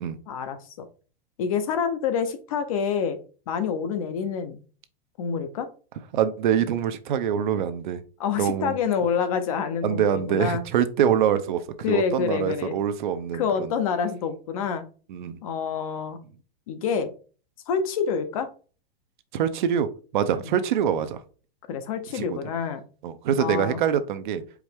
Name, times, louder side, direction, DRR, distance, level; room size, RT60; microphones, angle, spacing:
voice 1, 0.3-0.9 1.4-3.2 3.5-4.6 5.2-5.7 8.2-10.6 11.8-12.8 13.3-14.8 15.4-16.2 16.7-17.1 17.7-18.5 20.4-20.5 21.7-22.8 23.4-23.8, left 6 dB, 35° left, 9 dB, 0.5 m, -27 dB
voice 2, 6.1-8.0 8.4-8.7 9.8-11.6 11.9-13.7 15.1-15.4 19.3-19.9 20.1-21.2 22.1-22.4 23.0-24.4, right 9 dB, 55° right, 10 dB, 0.6 m, -24 dB
4.7 x 3.2 x 3.4 m, 0.37 s
supercardioid pair, 170°, 30 cm